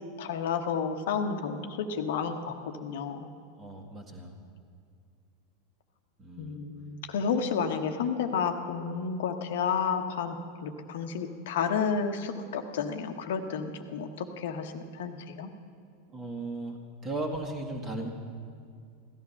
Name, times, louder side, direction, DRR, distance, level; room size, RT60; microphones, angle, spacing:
voice 1, 0.2-3.3 6.4-15.5, left 6 dB, 60° left, 6 dB, 1.1 m, -31 dB
voice 2, 3.6-4.4 6.2-6.6 16.1-16.8 17.0-18.1, right 2 dB, 25° right, 1 dB, 2.0 m, -36 dB
17.0 x 14.0 x 5.8 m, 2.4 s
figure-of-eight pair, 85°, 0 cm